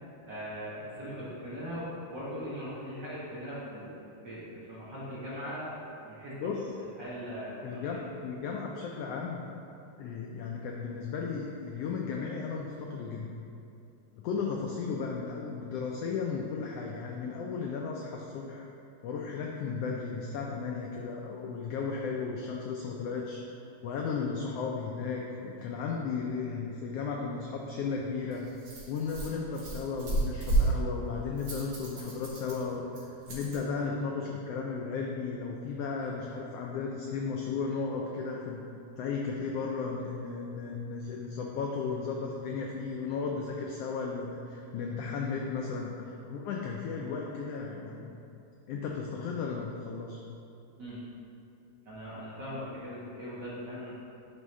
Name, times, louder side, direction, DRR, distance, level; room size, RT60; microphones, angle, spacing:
voice 1, 0.2-4.0 4.2-7.8 50.8-51.0 51.8-54.0, equal, 55° right, -10 dB, 1.2 m, -40 dB
voice 2, 7.6-9.4 10.0-13.3 14.1-18.7 19.0-28.4 28.9-38.6 39.0-48.2 48.7-50.2, left 5 dB, 90° left, -1 dB, 1.3 m, -35 dB
Rattle, 27.6-33.6, right 2 dB, 90° right, 3.0 m, -33 dB
10.5 x 3.6 x 3.1 m, 2.7 s
omnidirectional pair, 3.3 m